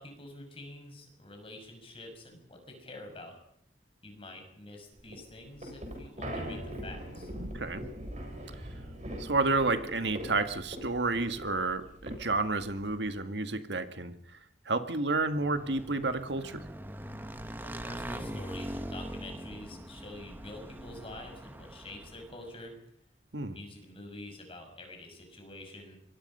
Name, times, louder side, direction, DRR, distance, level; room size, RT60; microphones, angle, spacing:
voice 1, 0.0-3.4 4.0-7.3 17.6-22.7 23.5-26.0, left 1 dB, 30° left, 4 dB, 5.9 m, -47 dB
sound 1, 5.0-13.1, equal, 40° right, 7.4 m, -42 dB
voice 2, 7.4-7.9 9.2-14.1 14.7-16.6 23.3-23.6, right 3 dB, 65° right, 9 dB, 1.9 m, -30 dB
Motorcycle / Engine, 15.2-22.5, right 1 dB, 10° right, 1.3 m, -42 dB
26.5 x 23.0 x 5.5 m, 0.69 s
head